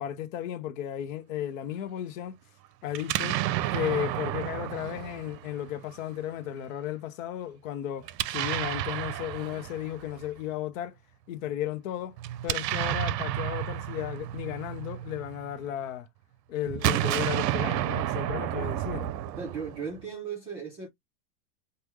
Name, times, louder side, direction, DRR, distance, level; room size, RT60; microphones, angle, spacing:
voice 1, 0.0-2.4 2.8-3.4 3.7-11.0 11.3-12.2 12.4-16.1 16.5-19.1, left 11 dB, 55° left, 0.6 m, -34 dB
Explosion, 2.9-6.0 8.0-10.3 12.2-15.6 16.6-20.0, right 13 dB, 85° right, 0.6 m, -31 dB
voice 2, 19.4-20.9, right 6 dB, 10° right, 0.6 m, -37 dB
3.5 x 2.2 x 3.0 m
supercardioid pair, 160°, 48 cm